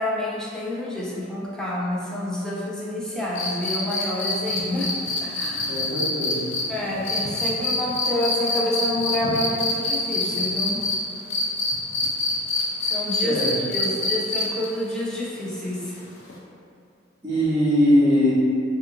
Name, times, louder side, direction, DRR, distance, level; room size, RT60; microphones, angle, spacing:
voice 1, 0.0-4.9 5.2-5.7 6.7-10.8 12.8-16.0, left 1 dB, 5° left, -6 dB, 0.3 m, -28 dB
sound 1, 3.4-11.0 11.3-14.7 16.3-16.4, left 3 dB, 80° left, 0.4 m, -25 dB
voice 2, 5.7-6.5 13.2-13.5 17.2-18.3, equal, 20° right, -16 dB, 0.8 m, -21 dB
2.6 x 2.4 x 2.6 m, 2.4 s
head